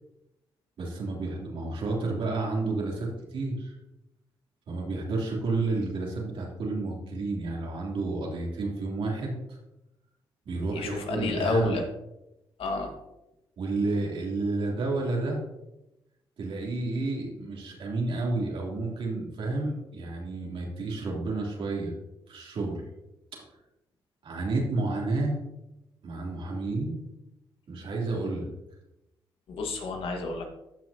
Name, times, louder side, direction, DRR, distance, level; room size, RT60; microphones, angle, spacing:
voice 1, 0.8-3.8 4.7-9.6 10.4-11.8 13.6-15.4 16.4-21.9 22.3-22.8 24.2-25.3 26.0-27.0 27.7-28.5, right 3 dB, 70° right, -2 dB, 3.2 m, -30 dB
voice 2, 10.7-11.8 12.6-12.9 29.5-30.4, left 3 dB, 75° left, 3 dB, 1.7 m, -30 dB
14.0 x 6.2 x 2.9 m, 0.90 s
cardioid pair, 70°, 10 cm